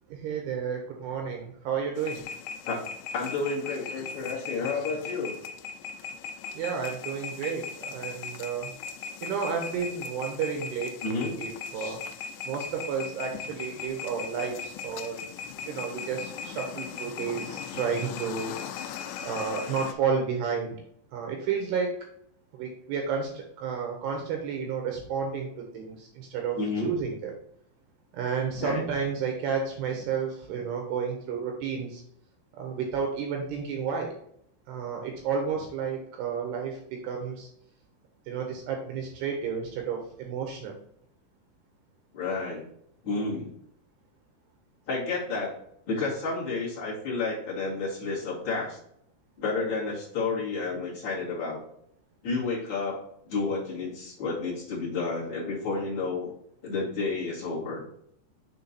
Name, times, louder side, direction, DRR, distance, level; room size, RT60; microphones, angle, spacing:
voice 1, 0.1-2.2 6.5-8.7 9.2-12.0 12.4-15.2 15.7-18.5 19.2-20.8 21.1-22.0 22.5-27.4 28.1-32.0 32.5-34.1 34.7-37.5 38.3-40.8, right 6 dB, 75° right, 1 dB, 2.6 m, -31 dB
sound 1, 2.0-19.9, left 6 dB, 85° left, 3.0 m, -38 dB
voice 2, 3.1-5.4 11.0-11.3 11.7-11.9 26.6-27.0 28.6-28.8 42.1-42.6 43.0-43.5 44.9-45.5 45.9-48.8 49.4-51.6 52.2-53.0 53.3-56.3 56.6-57.8, left 3 dB, 35° left, -7 dB, 2.0 m, -31 dB
7.2 x 3.6 x 4.1 m, 0.70 s
omnidirectional pair, 5.4 m